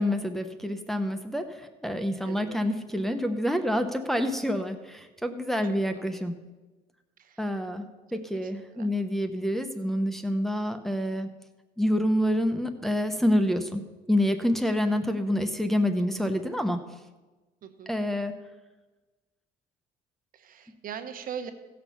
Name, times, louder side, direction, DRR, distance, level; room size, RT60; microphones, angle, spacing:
voice 1, 0.0-6.3 7.4-7.9 8.1-11.3 11.8-13.8 14.1-16.8 17.9-18.3, equal, ahead, 5 dB, 0.9 m, -27 dB
voice 2, 2.2-2.6 7.2-7.4 8.4-8.9 17.6-17.9 20.3-21.5, right 8 dB, 55° right, 9 dB, 1.1 m, -40 dB
16.0 x 6.4 x 5.7 m, 1.2 s
cardioid pair, 110°, 17 cm